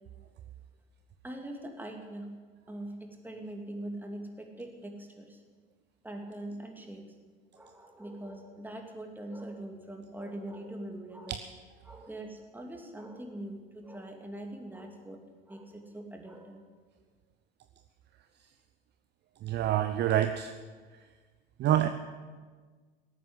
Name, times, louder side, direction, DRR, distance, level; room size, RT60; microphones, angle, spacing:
voice 1, 1.2-2.3 2.7-5.4 6.0-7.0 7.5-11.4 11.8-16.6, right 1 dB, 5° right, 2 dB, 2.6 m, -42 dB
voice 2, 19.4-20.5 21.6-21.9, right 11 dB, 35° right, 9 dB, 0.7 m, -26 dB
18.5 x 8.9 x 8.0 m, 1.4 s
figure-of-eight pair, 75°, 29 cm